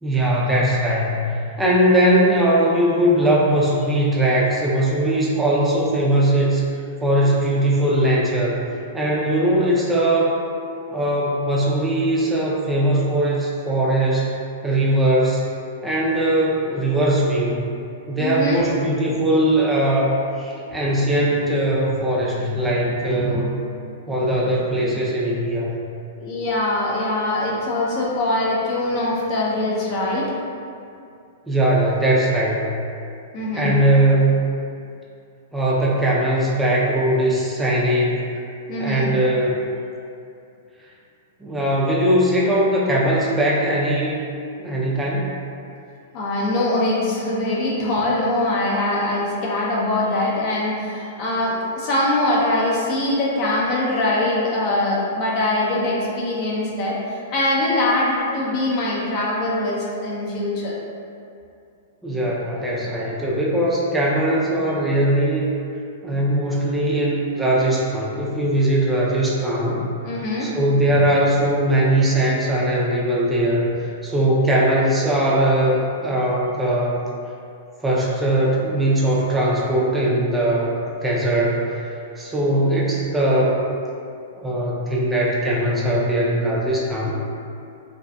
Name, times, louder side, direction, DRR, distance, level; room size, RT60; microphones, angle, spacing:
voice 1, 0.0-6.6 7.0-8.7 8.9-10.4 10.9-14.4 14.6-15.5 15.8-17.7 18.1-23.5 24.1-25.8 31.5-32.7 33.5-34.4 35.5-38.2 38.8-39.5 41.4-44.2 44.6-45.4 62.0-65.5 66.0-69.9 70.4-77.0 77.8-81.7 82.2-83.6 84.4-87.1, right 1 dB, 10° right, -5 dB, 0.4 m, -20 dB
voice 2, 18.2-18.6 26.1-30.3 33.3-33.8 38.7-39.1 46.1-60.7 70.0-70.5, left 1 dB, 40° left, -6 dB, 0.5 m, -22 dB
2.5 x 2.4 x 2.2 m, 2.5 s
hypercardioid pair, 125°, 0 cm